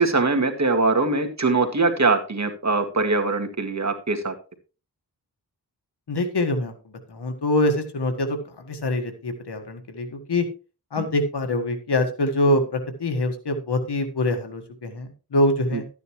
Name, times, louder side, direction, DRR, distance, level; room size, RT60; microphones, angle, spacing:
voice 1, 0.0-4.3 11.0-11.1 15.7-15.8, right 3 dB, 45° right, 5 dB, 2.1 m, -22 dB
voice 2, 6.1-6.7 7.1-10.4 10.9-15.8, left 1 dB, 85° left, 7 dB, 1.7 m, -24 dB
12.5 x 9.4 x 3.1 m, 0.33 s
cardioid pair, 50°, 39 cm